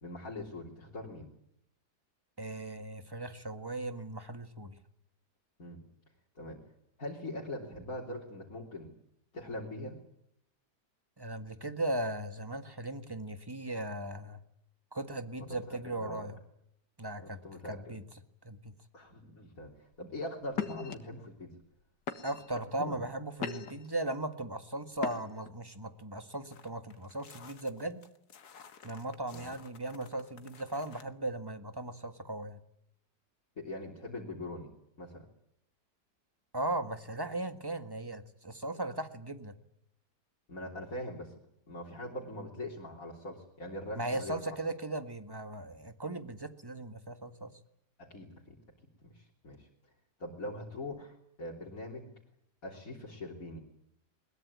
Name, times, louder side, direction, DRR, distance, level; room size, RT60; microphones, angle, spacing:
voice 1, 0.0-1.3 5.6-5.8 6.4-6.6 7.0-8.9 9.3-10.0 15.9-16.3 17.2-17.9 18.9-21.5 22.8-23.0 29.3-29.5 33.6-34.7 35.0-35.3 40.5-41.3 41.7-44.6 48.0-48.6 49.0-49.7 50.2-52.1 52.6-53.6, left 1 dB, 50° left, -4 dB, 3.9 m, -42 dB
voice 2, 2.4-4.8 11.2-14.4 14.9-16.4 17.0-18.0 18.4-18.7 22.2-28.0 28.8-32.6 36.5-39.5 43.9-47.5, right 2 dB, 15° right, 9 dB, 1.6 m, -37 dB
sound 1, 19.7-20.0 20.5-20.9 21.6-21.7 22.1-22.6 23.1-23.9 25.0-25.5, left 6 dB, 85° left, 2.5 m, -38 dB
sound 2, 26.5-31.1, left 6 dB, 65° left, 1.9 m, -55 dB
21.5 x 21.5 x 9.5 m, 0.76 s
omnidirectional pair, 1.8 m